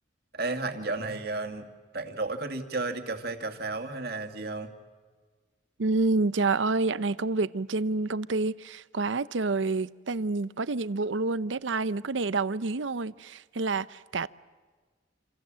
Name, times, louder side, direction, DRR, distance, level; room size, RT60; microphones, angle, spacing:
voice 1, 0.3-1.7 1.9-4.7, right 3 dB, 55° right, 2.3 m, -33 dB
voice 2, 5.8-14.3, right 3 dB, 80° right, 0.7 m, -28 dB
28.0 x 27.0 x 7.6 m
head